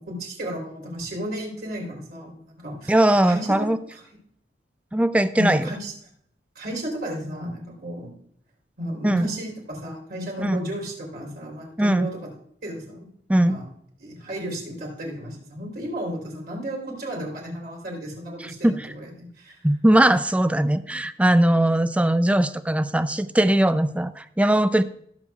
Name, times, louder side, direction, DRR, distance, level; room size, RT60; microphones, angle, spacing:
voice 1, 0.0-2.9 3.2-4.0 5.4-5.9 6.6-8.1 8.8-12.3 12.6-13.1 13.3-13.6 14.0-19.7, equal, 60° right, -1 dB, 3.4 m, -33 dB
voice 2, 2.9-3.8 4.9-5.7 9.0-9.3 10.4-10.6 11.8-12.1 13.3-13.6 18.6-18.7 19.6-24.8, right 1 dB, 10° right, 12 dB, 0.4 m, -20 dB
19.5 x 7.1 x 2.3 m, 0.68 s
head